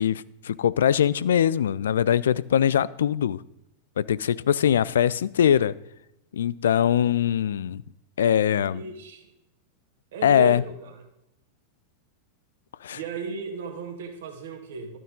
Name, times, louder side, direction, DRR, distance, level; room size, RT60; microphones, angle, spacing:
voice 1, 0.0-3.4 4.0-5.8 6.3-7.8 8.2-8.8 10.2-10.6 12.8-13.0, left 9 dB, 65° left, 19 dB, 0.3 m, -22 dB
voice 2, 8.7-9.3 10.1-11.0 12.9-15.0, right 5 dB, 60° right, 4 dB, 2.1 m, -35 dB
12.5 x 9.2 x 3.7 m, 0.85 s
figure-of-eight pair, 90°, 0 cm